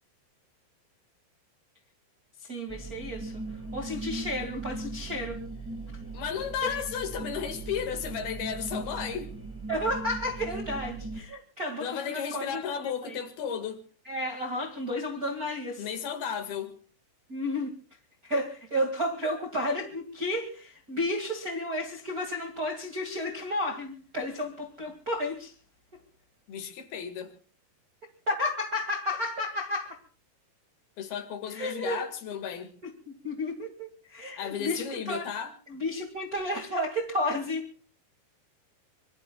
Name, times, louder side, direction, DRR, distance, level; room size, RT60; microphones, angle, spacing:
voice 1, 2.4-5.4 5.9-6.0 6.6-6.8 9.7-12.6 13.0-13.2 14.0-15.9 17.3-25.5 28.3-30.0 31.5-32.0 33.0-35.3 35.7-37.8, left 1 dB, 30° right, 1.6 m, -32 dB
sound 1, 2.7-11.2, right 3 dB, 5° right, 2.7 m, -39 dB
voice 2, 6.1-9.3 11.8-13.8 15.8-16.7 26.5-27.3 31.0-32.7 34.4-35.5, left 7 dB, 65° left, 3.6 m, -34 dB
25.0 x 24.5 x 2.3 m
omnidirectional pair, 5.0 m